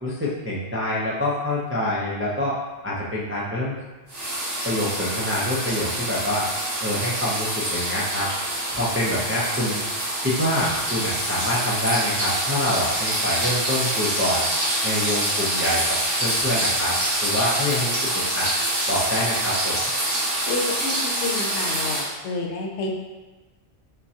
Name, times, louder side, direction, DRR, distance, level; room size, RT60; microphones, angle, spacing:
voice 1, 0.0-2.6 2.8-3.8 4.6-6.5 6.8-8.3 8.7-9.8 10.2-14.5 14.8-15.8 16.2-18.0 18.3-18.5 18.9-19.9, left 1 dB, 15° right, -7 dB, 0.4 m, -26 dB
sound 1, 4.1-22.1, right 1 dB, 80° right, 1.6 m, -26 dB
voice 2, 20.5-22.9, left 3 dB, 75° left, 1 dB, 0.9 m, -29 dB
5.2 x 2.2 x 2.8 m, 1.2 s
omnidirectional pair, 1.2 m